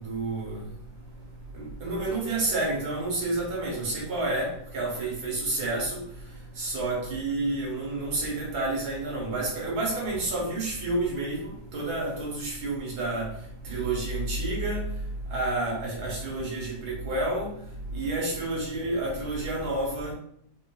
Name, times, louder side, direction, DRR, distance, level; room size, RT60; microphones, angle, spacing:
voice 1, 0.0-0.6 1.8-6.0 6.6-13.3 13.6-14.8 15.3-17.5 17.9-20.1, right 2 dB, 70° right, -3 dB, 1.3 m, -29 dB
3.2 x 2.3 x 2.2 m, 0.66 s
omnidirectional pair, 1.8 m